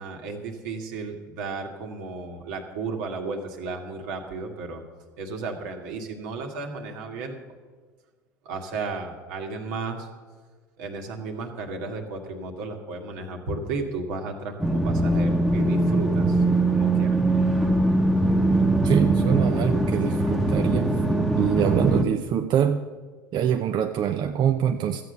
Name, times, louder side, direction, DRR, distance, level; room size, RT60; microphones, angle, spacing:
voice 1, 0.0-4.8 5.2-7.4 8.5-10.1 10.8-17.2, right 3 dB, 70° right, 3 dB, 1.9 m, -34 dB
sound 1, 14.6-22.0, right 2 dB, ahead, 1.1 m, -22 dB
voice 2, 18.8-21.0 21.4-22.8 23.3-25.0, right 9 dB, 45° right, 6 dB, 0.7 m, -24 dB
13.5 x 8.1 x 6.7 m, 1.5 s
hypercardioid pair, 80°, 10 cm